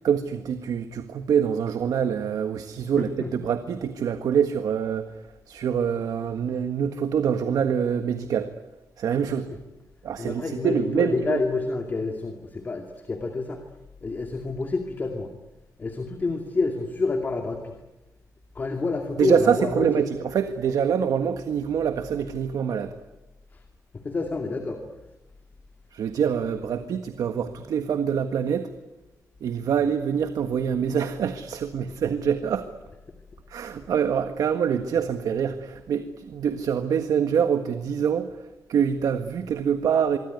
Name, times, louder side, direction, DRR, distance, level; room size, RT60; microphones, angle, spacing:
voice 1, 0.0-8.5 9.0-9.5 10.0-11.4 19.2-23.0 25.9-28.7 29.4-32.7 33.5-40.2, right 7 dB, 75° right, 9 dB, 1.6 m, -25 dB
voice 2, 3.0-3.3 10.2-13.6 14.0-15.3 15.8-17.7 18.5-20.0 23.5-23.6 23.9-24.8, left 3 dB, 30° left, 5 dB, 2.4 m, -28 dB
24.5 x 24.5 x 9.5 m, 1.0 s
wide cardioid pair, 160°, 6 cm